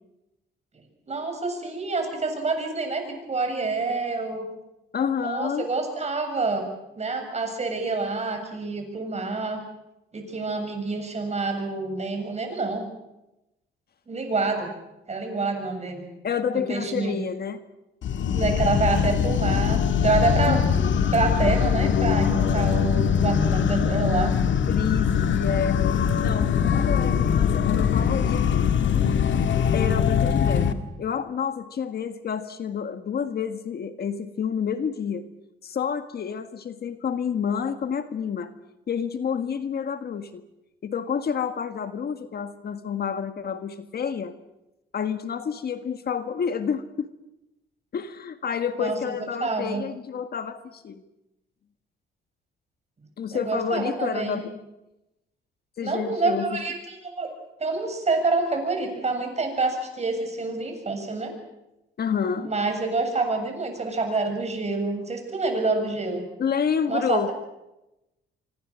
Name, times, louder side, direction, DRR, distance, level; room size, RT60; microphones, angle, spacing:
voice 1, 1.1-4.4 5.2-6.7 6.9-9.6 10.1-12.9 14.1-14.7 15.1-16.1 16.7-17.2 18.3-20.6 21.1-24.3 48.7-49.8 53.3-54.4 55.8-57.3 57.6-61.3 62.4-66.2 66.9-67.3, right 3 dB, 35° right, 5 dB, 7.5 m, -27 dB
voice 2, 4.9-5.7 16.2-17.6 20.4-20.7 24.5-25.8 26.2-28.6 29.7-30.7 31.0-35.2 35.6-38.5 38.9-40.4 40.8-44.3 44.9-47.1 47.9-51.0 53.2-54.5 55.8-56.6 62.0-62.5 66.4-67.3, left 7 dB, 50° left, 9 dB, 1.7 m, -29 dB
sound 1, 18.0-30.7, left 7 dB, 70° left, 1.9 m, -22 dB
26.0 x 25.0 x 6.4 m, 0.94 s
cardioid pair, 90°, 20 cm